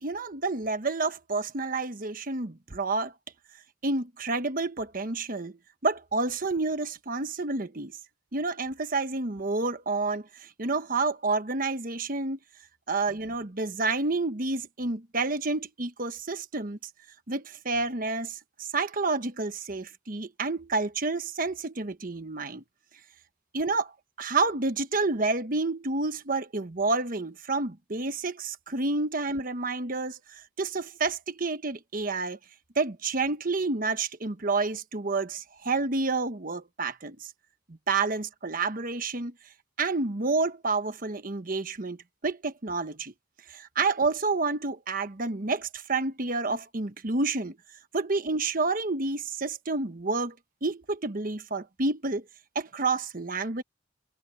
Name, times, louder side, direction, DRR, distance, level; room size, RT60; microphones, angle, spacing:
voice 1, 0.0-3.1 3.8-5.6 5.8-8.0 8.3-12.4 12.9-16.8 17.3-22.6 23.5-23.9 24.2-32.4 32.8-37.3 37.9-39.3 39.8-42.0 42.2-43.1 43.5-47.6 47.9-50.3 50.6-52.2 52.5-53.6, right 3 dB, 45° right, 1.1 m, -29 dB
head